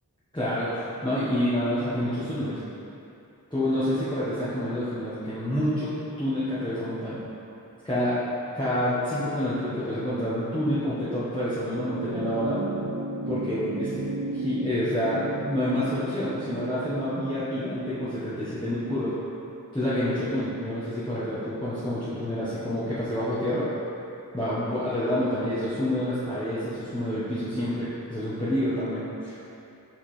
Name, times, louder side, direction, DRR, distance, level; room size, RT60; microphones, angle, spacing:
voice 1, 0.3-2.6 3.5-5.9 6.2-7.2 7.8-8.2 8.5-12.6 13.3-13.9 14.3-19.1 19.7-23.6 24.3-29.4, equal, 15° left, -12 dB, 1.2 m, -28 dB
sound 1, 11.7-20.3 21.5-21.6, right 1 dB, 60° right, 0.5 m, -35 dB
6.1 x 5.0 x 3.3 m, 2.8 s
wide cardioid pair, 40°, 36 cm